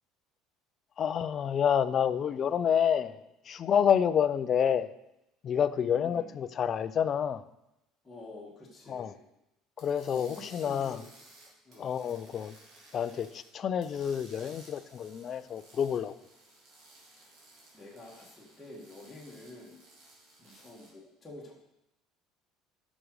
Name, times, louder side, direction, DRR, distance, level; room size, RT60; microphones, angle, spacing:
voice 1, 1.0-4.9 5.4-7.4 8.9-9.1 9.8-11.0 11.8-12.6 12.9-16.1, left 8 dB, 35° left, 14 dB, 0.5 m, -28 dB
voice 2, 5.8-6.4 8.0-9.2 10.1-11.1 11.6-11.9 17.2-17.4 17.7-19.8 20.4-21.5, left 2 dB, 10° left, -6 dB, 2.0 m, -48 dB
sound 1, 9.8-13.5 13.8-20.9, right 2 dB, 55° right, 2.9 m, -57 dB
10.5 x 6.3 x 4.9 m, 0.88 s
cardioid pair, 140°, 0 cm